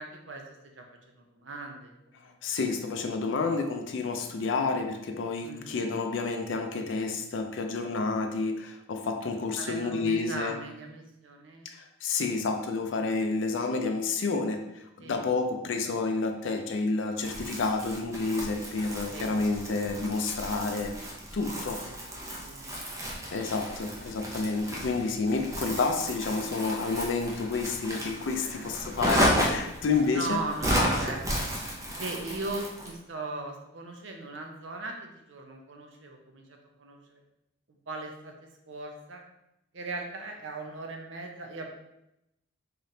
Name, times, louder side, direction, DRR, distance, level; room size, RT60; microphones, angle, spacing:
voice 1, 0.0-2.3 5.4-5.7 9.6-11.7 15.0-15.2 19.1-19.3 21.5-22.9 28.4-29.0 30.1-31.5 31.9-37.2 37.9-39.2 39.7-41.7, right 3 dB, 60° right, 3 dB, 0.6 m, -39 dB
voice 2, 2.2-10.6 11.6-20.9 21.3-21.8 23.3-30.4, left 4 dB, 65° left, 5 dB, 0.4 m, -30 dB
Crumpling crinkling, 17.2-33.0, equal, 15° right, 0.5 m, -33 dB
3.9 x 3.3 x 2.7 m, 0.85 s
head